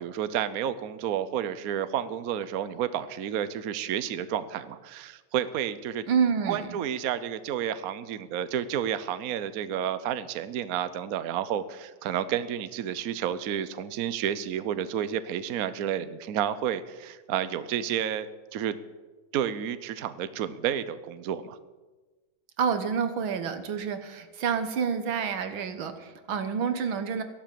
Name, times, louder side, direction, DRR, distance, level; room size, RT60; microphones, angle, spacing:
voice 1, 0.0-6.0 6.5-18.8 19.3-21.6, right 9 dB, 65° right, 13 dB, 0.9 m, -31 dB
voice 2, 6.1-6.7 22.6-27.2, right 6 dB, 80° right, 9 dB, 2.0 m, -28 dB
14.0 x 11.5 x 7.5 m, 1.3 s
omnidirectional pair, 2.2 m